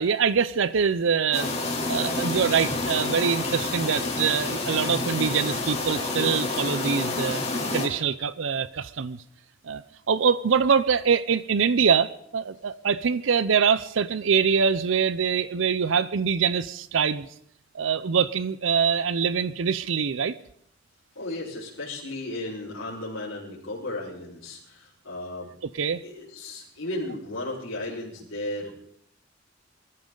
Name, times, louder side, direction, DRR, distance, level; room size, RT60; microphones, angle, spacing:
voice 1, 0.0-7.4 7.7-9.2 9.6-9.8 10.1-17.3 17.7-20.4 25.7-26.0, right 6 dB, 75° right, 15 dB, 0.5 m, -24 dB
sound 1, 1.3-7.9, left 2 dB, 30° left, 3.2 m, -28 dB
voice 2, 21.1-25.5 26.0-28.8, left 2 dB, 80° left, -10 dB, 4.7 m, -35 dB
24.0 x 14.0 x 3.9 m, 0.69 s
head